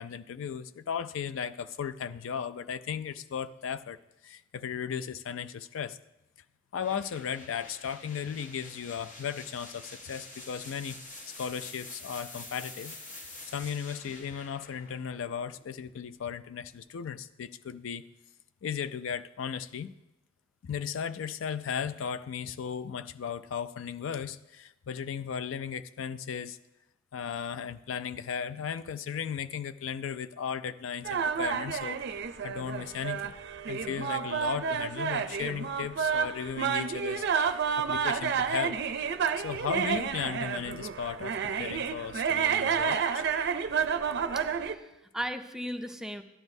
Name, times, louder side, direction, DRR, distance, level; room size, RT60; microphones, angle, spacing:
voice 1, 0.0-4.0 4.2-6.0 6.7-11.0 11.3-18.0 18.6-19.9 20.6-26.6 27.1-32.0 32.4-33.3 33.7-38.8 39.4-43.2, left 7 dB, 85° left, 13 dB, 0.4 m, -36 dB
sound 1, 6.8-16.6, left 2 dB, 40° left, 1.2 m, -47 dB
sound 2, 31.0-44.7, right 7 dB, 60° right, 0.5 m, -30 dB
voice 2, 44.3-46.2, equal, 5° right, 7 dB, 0.4 m, -37 dB
12.5 x 10.5 x 2.7 m, 0.95 s
head